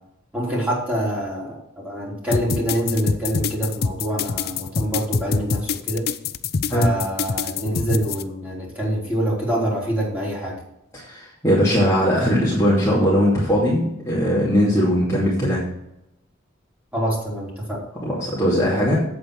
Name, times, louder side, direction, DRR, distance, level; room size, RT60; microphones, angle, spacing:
voice 1, 0.3-1.6 1.8-6.0 6.7-10.6 16.9-17.8, equal, 10° right, -5 dB, 3.8 m, -25 dB
sound 1, 2.3-8.2, left 5 dB, 50° left, 0.5 m, -24 dB
voice 2, 10.9-15.6 18.0-19.0, equal, 15° left, -8 dB, 2.5 m, -19 dB
8.4 x 8.0 x 4.7 m, 0.82 s
head